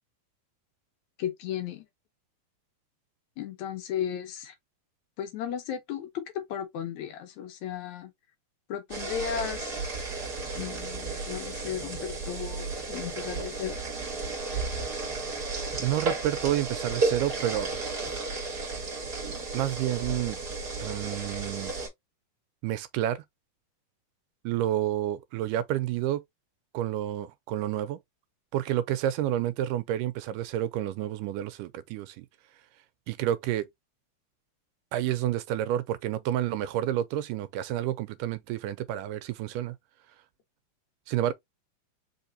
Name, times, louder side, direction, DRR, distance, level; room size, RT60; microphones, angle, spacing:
voice 1, 1.2-1.8 3.4-4.5 5.2-8.1 8.7-9.8 10.6-13.8, left 9 dB, 70° left, 2.1 m, -35 dB
sound 1, 8.9-21.9, right 3 dB, 30° right, 2.8 m, -33 dB
voice 2, 15.8-17.7 19.5-20.4 20.8-21.7 22.6-23.2 24.4-26.2 26.7-28.0 28.5-32.3 33.1-33.7 34.9-39.8 41.1-41.3, right 12 dB, 85° right, 2.2 m, -29 dB
5.0 x 3.5 x 2.7 m
omnidirectional pair, 3.7 m